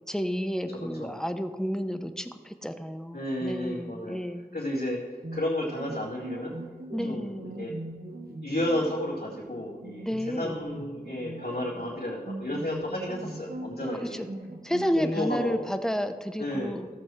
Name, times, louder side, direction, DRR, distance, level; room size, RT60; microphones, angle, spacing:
voice 1, 0.1-4.6 6.9-7.5 10.0-10.5 14.0-14.3 14.6-16.9, equal, 5° left, 8 dB, 0.7 m, -31 dB
voice 2, 0.7-1.2 3.1-4.2 4.5-5.0 5.3-6.6 7.0-7.7 8.4-14.2 14.9-15.6 16.4-16.8, left 1 dB, 80° left, -10 dB, 2.4 m, -32 dB
sound 1, 5.2-15.0, right 2 dB, 70° right, 1.1 m, -40 dB
15.0 x 7.6 x 3.2 m, 1.5 s
wide cardioid pair, 45°, 16 cm